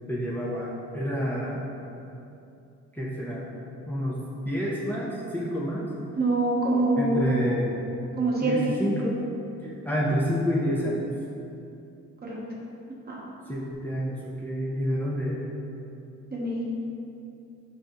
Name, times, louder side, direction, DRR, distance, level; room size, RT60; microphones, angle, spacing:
voice 1, 0.1-1.7 2.9-3.5 3.9-4.2 4.4-5.9 7.0-7.8 8.4-9.2 9.6-11.1 13.5-15.5, equal, 5° left, -7 dB, 0.7 m, -28 dB
voice 2, 6.2-7.3 8.2-8.8 12.2-12.4 13.1-13.2 16.3-16.6, right 2 dB, 30° right, -4 dB, 1.0 m, -25 dB
5.4 x 2.7 x 3.6 m, 2.7 s
cardioid pair, 90°, 30 cm